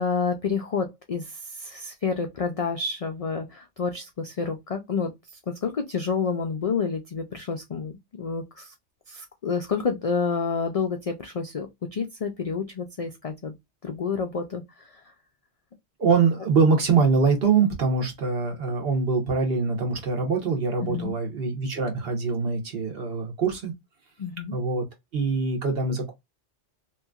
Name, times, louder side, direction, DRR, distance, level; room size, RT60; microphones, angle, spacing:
voice 1, 0.0-8.7 9.1-13.5 13.8-15.0 20.8-21.1 24.2-24.6, left 5 dB, 65° left, 0.3 m, -29 dB
voice 2, 16.0-23.7 24.5-24.8 25.1-26.1, right 4 dB, 55° right, 1.2 m, -23 dB
2.9 x 2.7 x 2.3 m
omnidirectional pair, 1.2 m